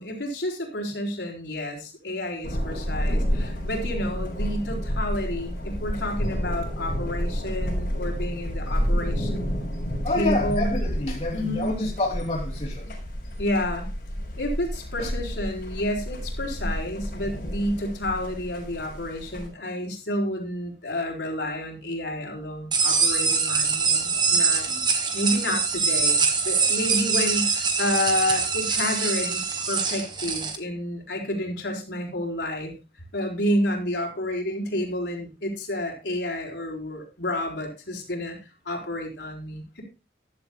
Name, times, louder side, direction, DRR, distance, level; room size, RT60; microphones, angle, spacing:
voice 1, 0.0-9.6 10.2-10.7 11.3-11.8 13.4-13.8 14.4-24.7 25.1-26.2 26.4-29.4 29.7-32.8 33.1-38.4 38.6-39.8, left 1 dB, 85° left, 4.3 m, -30 dB
Thunder, 2.4-19.5, equal, 55° left, 6.9 m, -30 dB
voice 2, 10.0-13.0 15.0-15.1 24.7-24.8, left 2 dB, 35° left, 3.1 m, -28 dB
sound 1, 22.7-30.6, right 5 dB, 25° right, 1.4 m, -24 dB
14.5 x 11.5 x 2.3 m
head